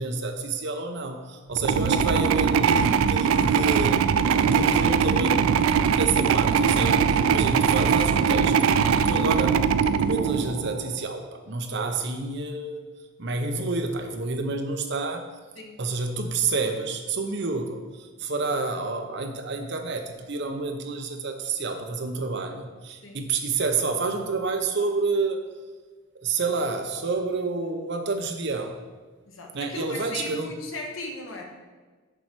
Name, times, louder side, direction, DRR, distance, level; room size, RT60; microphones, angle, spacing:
voice 1, 0.0-4.0 4.4-5.4 5.7-8.5 9.0-9.6 10.0-12.8 13.2-15.3 15.8-25.4 26.1-28.8 29.5-30.5, right 3 dB, 55° right, 6 dB, 0.7 m, -29 dB
sound 1, 1.5-10.9, right 6 dB, 75° right, 0.3 m, -21 dB
voice 2, 29.3-31.4, left 2 dB, 70° left, 1 dB, 1.2 m, -37 dB
6.9 x 4.4 x 6.0 m, 1.4 s
head